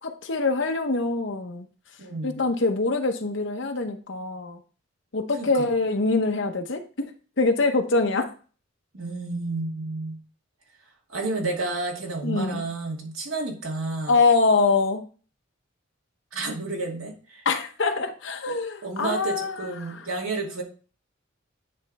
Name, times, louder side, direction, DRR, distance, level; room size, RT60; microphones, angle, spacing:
voice 1, 0.0-1.7 2.2-4.6 5.1-7.1 7.4-8.3 12.2-12.6 14.1-15.0 17.4-19.9, left 3 dB, 60° left, 5 dB, 0.9 m, -24 dB
voice 2, 2.0-2.4 5.4-5.7 8.9-10.2 11.1-14.2 16.3-17.4 18.5-20.6, right 3 dB, 90° right, -1 dB, 2.2 m, -31 dB
9.7 x 3.3 x 4.1 m, 0.38 s
head